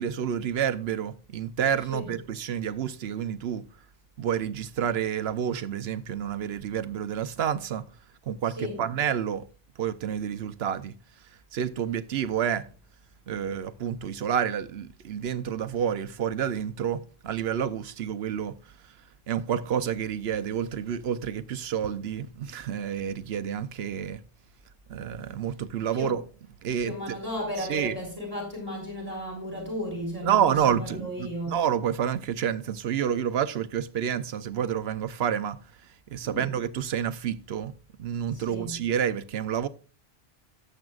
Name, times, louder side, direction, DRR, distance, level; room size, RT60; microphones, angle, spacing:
voice 1, 0.0-3.6 4.2-7.8 8.3-9.5 9.8-10.9 11.5-12.7 13.3-18.6 19.3-24.2 24.9-26.2 26.6-26.9 27.6-28.0 30.2-35.6 36.1-37.7 38.0-39.7, right 9 dB, 80° right, 1.0 m, -29 dB
voice 2, 26.8-31.6 36.2-36.4 38.3-38.8, equal, 10° right, 4.7 m, -34 dB
18.5 x 7.8 x 2.4 m
omnidirectional pair, 1.0 m